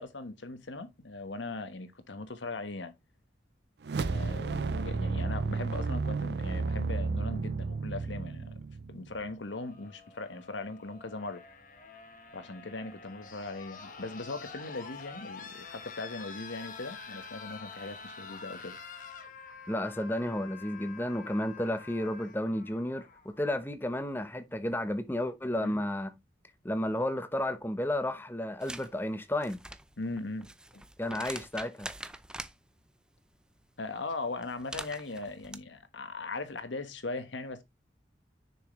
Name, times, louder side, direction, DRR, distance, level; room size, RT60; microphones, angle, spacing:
voice 1, 0.0-2.9 4.0-8.6 8.9-11.4 12.3-18.8 25.6-25.8 30.0-30.8 33.8-37.6, left 3 dB, 85° left, 1.3 m, -39 dB
sound 1, 3.8-9.2, right 4 dB, 65° right, 0.4 m, -32 dB
sound 2, 9.4-23.4 24.7-24.8, left 5 dB, 45° left, 1.2 m, -47 dB
voice 2, 19.7-26.1 26.6-29.6 31.0-31.9, left 1 dB, 10° left, 0.9 m, -32 dB
sound 3, 28.6-28.9 29.3-32.5 34.4-35.6, right 1 dB, 5° right, 0.4 m, -43 dB
6.7 x 6.2 x 3.1 m
head